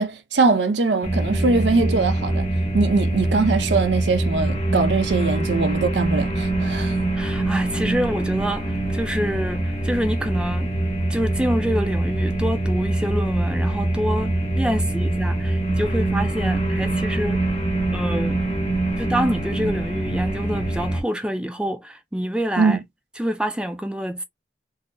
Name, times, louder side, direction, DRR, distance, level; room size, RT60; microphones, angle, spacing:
voice 1, 0.0-2.5 2.7-7.0 22.6-22.8, right 3 dB, 75° right, 0.6 m, -22 dB
sound 1, 1.0-21.0, right 1 dB, 35° left, 1.0 m, -24 dB
voice 2, 7.1-10.7 11.1-17.5 17.9-18.4 19.0-22.8 23.2-24.2, equal, 5° right, 0.3 m, -27 dB
3.9 x 2.0 x 2.5 m
head